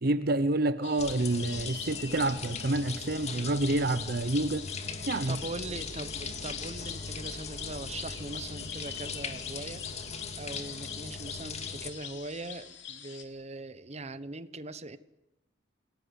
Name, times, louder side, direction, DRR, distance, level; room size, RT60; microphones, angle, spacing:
voice 1, 0.0-4.7 5.1-5.4, right 2 dB, 55° right, 0.8 m, -28 dB
sound 1, 0.8-13.2, left 8 dB, 70° left, 3.1 m, -43 dB
sound 2, 1.0-11.9, left 4 dB, 35° left, 2.4 m, -40 dB
sound 3, 5.2-12.8, right 1 dB, 80° right, 2.8 m, -51 dB
voice 2, 5.3-9.9 10.4-15.0, right 2 dB, 35° right, 1.1 m, -41 dB
28.0 x 18.0 x 8.3 m
head